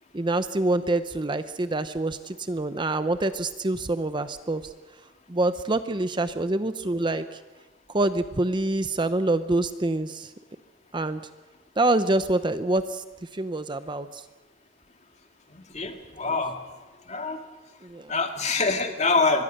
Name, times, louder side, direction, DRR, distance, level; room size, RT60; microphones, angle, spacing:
voice 1, 0.1-4.6 5.3-7.4 7.9-10.3 10.9-11.2 11.8-13.0 13.3-14.2 16.2-16.4 17.8-18.2, right 2 dB, 25° right, 11 dB, 0.7 m, -26 dB
voice 2, 15.5-16.5 17.1-17.4 18.1-19.4, left 3 dB, 35° left, 4 dB, 2.2 m, -25 dB
25.0 x 21.5 x 6.6 m, 1.2 s
head